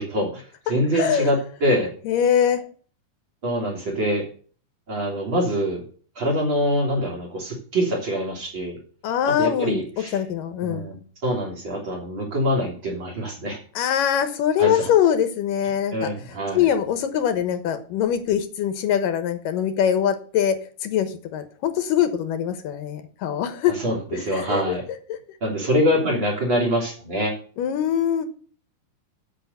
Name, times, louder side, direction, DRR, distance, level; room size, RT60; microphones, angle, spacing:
voice 1, 0.0-1.9 3.4-4.3 4.9-5.8 6.2-8.8 9.3-10.2 10.6-13.6 14.6-14.9 15.9-16.7 23.7-24.8 25.4-27.4, equal, 35° right, -1 dB, 3.7 m, -25 dB
voice 2, 0.9-1.3 2.1-2.6 9.0-9.8 10.1-10.9 13.8-15.9 16.5-20.6 20.8-23.8 24.1-24.8 27.6-28.3, left 9 dB, 80° left, 9 dB, 2.8 m, -23 dB
8.3 x 7.0 x 8.1 m, 0.42 s
omnidirectional pair, 3.9 m